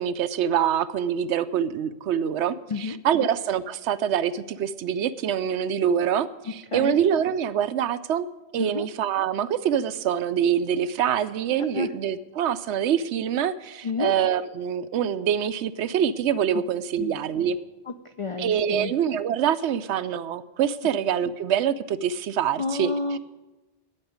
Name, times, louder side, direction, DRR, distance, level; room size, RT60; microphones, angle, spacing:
voice 1, 0.0-8.3 8.5-17.6 18.4-23.2, right 9 dB, 75° right, 14 dB, 0.8 m, -25 dB
voice 2, 2.7-3.3 6.7-7.0 8.6-8.9 11.7-11.9 13.8-14.1 17.0-17.2 17.9-18.9 22.6-23.2, left 4 dB, 60° left, 8 dB, 0.3 m, -30 dB
9.1 x 8.7 x 9.3 m, 1.1 s
omnidirectional pair, 1.2 m